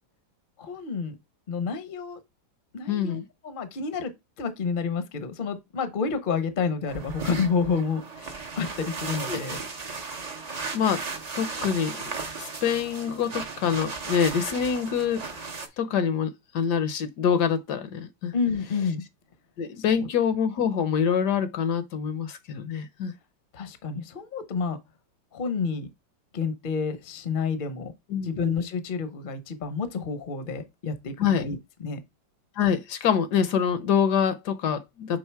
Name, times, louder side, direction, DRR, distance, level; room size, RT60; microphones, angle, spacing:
voice 1, 0.6-1.2 1.5-2.2 2.7-4.1 4.4-9.6 18.3-19.0 20.0-20.1 23.5-24.8 25.3-25.9 26.3-27.9 28.2-32.0, left 5 dB, 45° left, 0.7 m, -29 dB
voice 2, 2.9-3.2 9.3-9.4 10.7-11.0 11.3-15.3 15.8-18.3 19.6-23.1 28.1-28.5 31.2-31.5 32.6-35.2, left 7 dB, 70° left, 1.2 m, -25 dB
sound 1, 6.9-15.7, right 4 dB, 45° right, 0.5 m, -36 dB
5.5 x 3.8 x 4.5 m
omnidirectional pair, 2.0 m